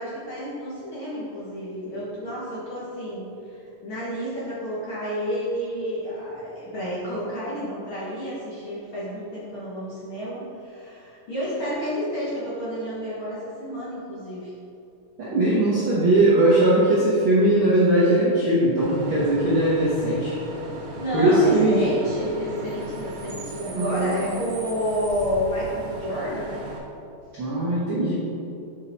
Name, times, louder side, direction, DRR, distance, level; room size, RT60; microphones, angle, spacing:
voice 1, 0.0-14.5 20.9-26.6, equal, 55° left, -8 dB, 1.6 m, -30 dB
voice 2, 15.2-20.4 21.1-21.8 23.7-24.3 27.4-28.1, right 1 dB, 65° right, -8 dB, 1.2 m, -20 dB
Bus / Idling / Screech, 18.8-26.8, right 2 dB, 80° right, 3.1 m, -37 dB
7.0 x 5.5 x 4.4 m, 2.8 s
omnidirectional pair, 3.8 m